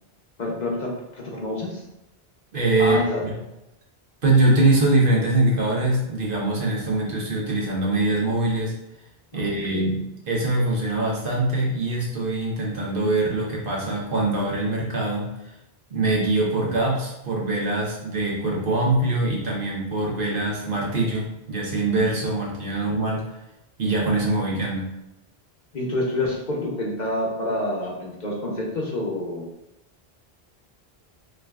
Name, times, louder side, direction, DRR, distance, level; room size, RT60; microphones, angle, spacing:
voice 1, 0.4-1.8 2.8-3.2 9.3-9.9 25.7-29.5, left 1 dB, 50° left, -2 dB, 0.7 m, -28 dB
voice 2, 2.5-3.3 4.2-8.7 9.3-15.3 15.9-23.2 23.8-24.9, right 2 dB, 60° right, -3 dB, 1.0 m, -23 dB
4.6 x 2.3 x 2.3 m, 0.91 s
omnidirectional pair, 1.0 m